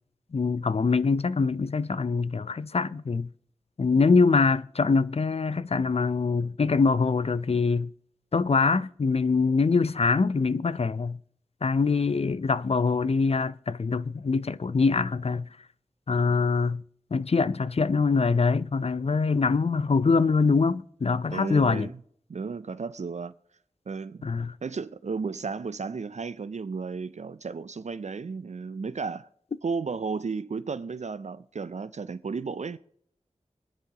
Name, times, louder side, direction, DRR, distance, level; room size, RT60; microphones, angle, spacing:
voice 1, 0.3-3.3 3.8-7.9 8.3-11.2 11.6-15.5 16.1-16.8 17.1-21.9 24.2-24.5, left 4 dB, 55° left, 0.5 m, -24 dB
voice 2, 21.3-22.0 22.3-23.3 23.9-24.3 24.6-29.3 29.6-32.8, right 5 dB, 65° right, 0.4 m, -33 dB
26.5 x 9.9 x 2.9 m
wide cardioid pair, 65°, 13 cm